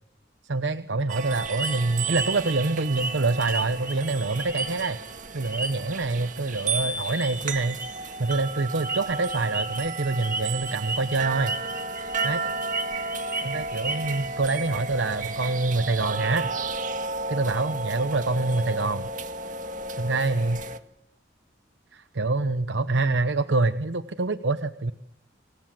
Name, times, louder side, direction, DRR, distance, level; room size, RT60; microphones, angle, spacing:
voice 1, 0.4-5.0 5.3-7.8 8.2-11.5 12.2-12.4 13.4-16.5 17.3-19.1 20.0-20.6 21.9-24.9, right 3 dB, 75° right, 11 dB, 1.0 m, -26 dB
sound 1, 1.1-20.8, right 4 dB, 45° right, 1.9 m, -33 dB
sound 2, 1.6-5.1 5.4-6.0 6.5-6.7 7.0-7.3 7.8-14.3, right 2 dB, 10° right, 5.0 m, -34 dB
29.5 x 24.5 x 7.7 m, 0.79 s
head